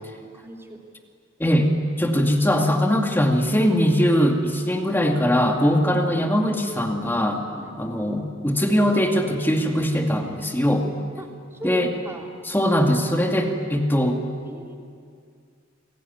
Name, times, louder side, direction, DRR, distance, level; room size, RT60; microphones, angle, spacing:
voice 1, 0.3-0.8 5.9-6.0 7.5-7.7 11.2-12.3 14.4-14.8, right 1 dB, 15° right, 1 dB, 3.2 m, -38 dB
voice 2, 1.4-1.7 2.0-7.4 7.8-10.9 11.6-11.9 12.5-14.2, equal, 10° left, 2 dB, 2.3 m, -21 dB
28.5 x 21.0 x 9.6 m, 2.2 s
head